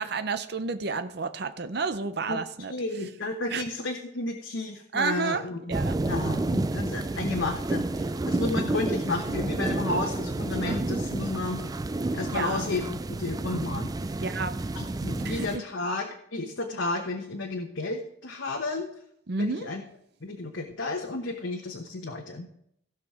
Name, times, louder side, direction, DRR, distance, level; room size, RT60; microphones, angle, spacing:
voice 1, 0.0-2.7 3.5-3.6 4.9-5.4 5.7-6.0 12.3-12.7 14.2-14.6 15.2-15.6 19.3-19.7, right 4 dB, 60° right, 10 dB, 0.7 m, -30 dB
voice 2, 2.7-5.8 6.1-11.6 12.1-13.9 14.8-18.9 19.4-19.8 20.2-22.5, left 2 dB, 90° left, 2 dB, 1.1 m, -32 dB
sound 1, 5.7-15.6, right 2 dB, 20° right, 0.3 m, -30 dB
16.5 x 6.0 x 4.9 m, 0.71 s
head